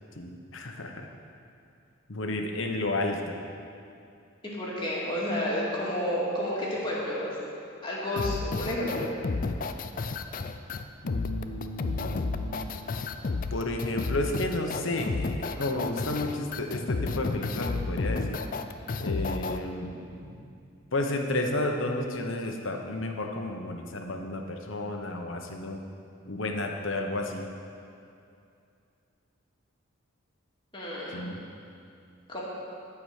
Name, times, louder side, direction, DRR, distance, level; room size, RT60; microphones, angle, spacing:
voice 1, 0.2-1.1 2.1-3.4 11.0-12.7 13.5-18.4 19.0-20.4 20.9-25.8 26.2-27.5 31.1-31.3, left 2 dB, 70° left, 3 dB, 1.0 m, -32 dB
voice 2, 4.4-7.3 7.8-9.1 30.7-31.2 32.3-32.4, left 1 dB, 25° left, -6 dB, 2.2 m, -30 dB
sound 1, 8.2-19.6, left 3 dB, 40° left, 0.4 m, -31 dB
14.5 x 4.8 x 6.6 m, 2.5 s
head